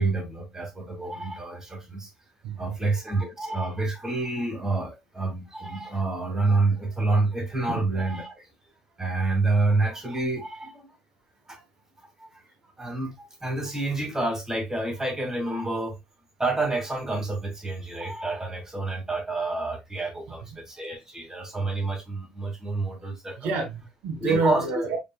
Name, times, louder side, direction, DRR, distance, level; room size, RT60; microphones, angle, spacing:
voice 1, 0.0-2.1 2.6-8.4 9.0-10.9 11.5-11.6 12.2-12.4 12.8-15.9 16.4-23.5 24.2-24.6, right 2 dB, 15° right, 2.2 m, -28 dB
voice 2, 2.4-2.9 7.7-7.8 20.4-20.5 23.0-23.1 23.4-25.0, right 4 dB, 70° right, 1.0 m, -28 dB
5.3 x 3.3 x 2.3 m
hypercardioid pair, 65°, 3 cm